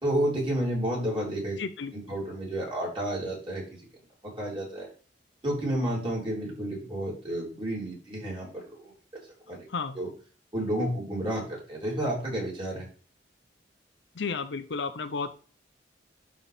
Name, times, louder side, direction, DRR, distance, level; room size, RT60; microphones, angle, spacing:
voice 1, 0.0-1.6 1.9-3.9 4.2-4.9 5.4-9.7 10.0-10.1 10.5-12.9, right 1 dB, 30° right, -4 dB, 3.8 m, -31 dB
voice 2, 1.6-1.9 9.5-10.0 14.1-15.3, left 4 dB, 75° left, 10 dB, 0.7 m, -33 dB
11.5 x 4.3 x 3.6 m, 0.39 s
head